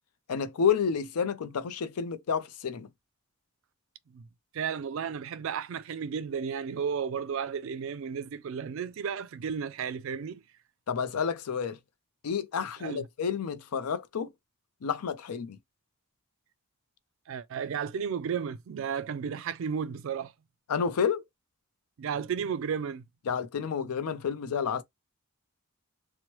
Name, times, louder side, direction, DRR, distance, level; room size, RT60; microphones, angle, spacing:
voice 1, 0.3-2.9 10.9-11.8 12.2-14.3 14.8-15.6 20.7-21.2 23.3-24.8, left 6 dB, 90° left, 0.5 m, -30 dB
voice 2, 4.5-10.4 12.8-13.1 17.3-20.3 22.0-23.0, right 7 dB, 60° right, 0.3 m, -33 dB
3.0 x 2.1 x 2.9 m
head